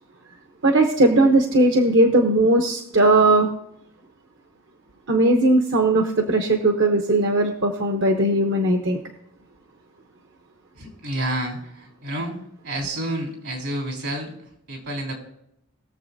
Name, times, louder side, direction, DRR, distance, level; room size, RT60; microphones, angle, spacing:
voice 1, 0.6-3.5 5.1-9.0, right 2 dB, 55° right, 4 dB, 1.0 m, -18 dB
voice 2, 10.7-12.4 12.6-15.1, right 1 dB, 75° right, -1 dB, 3.8 m, -30 dB
21.0 x 7.2 x 2.7 m, 0.78 s
head